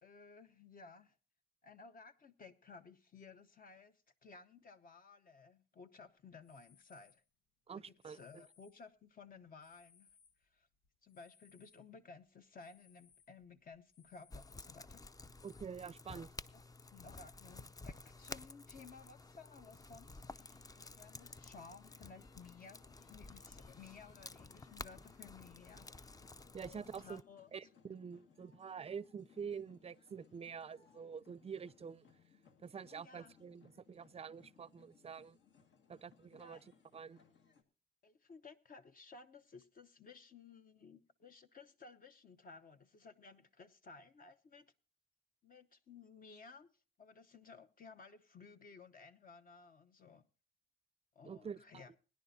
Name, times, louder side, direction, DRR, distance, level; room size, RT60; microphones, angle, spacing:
voice 1, 0.0-1.2 1.6-7.2 7.7-10.1 10.4-10.7 11.0-15.0 16.5-16.6 16.9-20.4 21.0-22.8 23.1-25.9 26.6-27.5 32.9-33.3 36.3-36.6 38.0-44.7 45.4-46.7 47.0-50.3 51.1-51.9, left 4 dB, 45° left, 0.9 m, -57 dB
sound 1, 6.4-7.3 8.0-9.0 9.5-11.9 12.2-15.6, left 6 dB, 85° left, 1.3 m, -69 dB
voice 2, 7.7-8.4 15.4-16.3 26.5-27.2 27.5-32.0 32.6-35.4 35.9-36.6 36.9-37.2 51.2-51.8, right 6 dB, 30° right, 0.5 m, -47 dB
sound 2, 14.3-27.2, left 3 dB, 20° left, 0.5 m, -53 dB
sound 3, 20.4-37.6, left 6 dB, 70° left, 1.9 m, -68 dB
22.0 x 10.5 x 2.7 m
cardioid pair, 90°, 20 cm